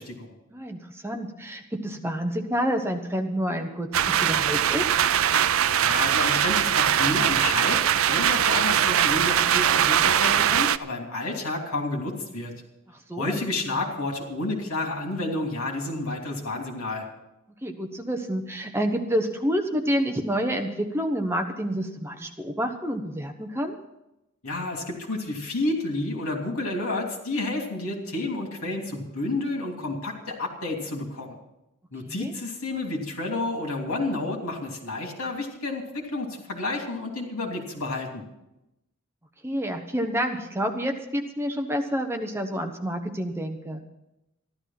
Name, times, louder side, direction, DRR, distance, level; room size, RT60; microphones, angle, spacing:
voice 1, 0.0-0.3 5.8-12.5 13.2-17.1 24.4-31.4 31.9-38.2, left 2 dB, 85° left, 2 dB, 3.1 m, -30 dB
voice 2, 0.5-4.9 13.1-13.4 17.6-23.7 32.0-32.3 39.4-43.8, equal, 10° right, 4 dB, 1.0 m, -28 dB
sound 1, 3.9-10.8, right 9 dB, 75° right, 0.5 m, -21 dB
14.0 x 12.0 x 5.9 m, 0.90 s
head